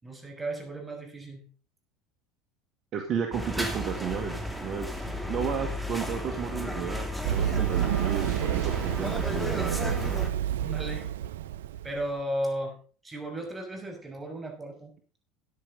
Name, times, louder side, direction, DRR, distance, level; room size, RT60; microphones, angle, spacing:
voice 1, 0.0-1.5 10.6-11.1 11.8-12.8 13.0-14.9, right 1 dB, 20° right, 3 dB, 6.0 m, -35 dB
voice 2, 2.9-10.0, right 7 dB, 45° right, 5 dB, 1.9 m, -33 dB
sound 1, 3.3-10.3, left 1 dB, 5° right, 2.9 m, -34 dB
Run, 7.2-12.0, right 11 dB, 80° right, 0.5 m, -29 dB
14.5 x 10.0 x 4.0 m, 0.38 s
hypercardioid pair, 80°, 0 cm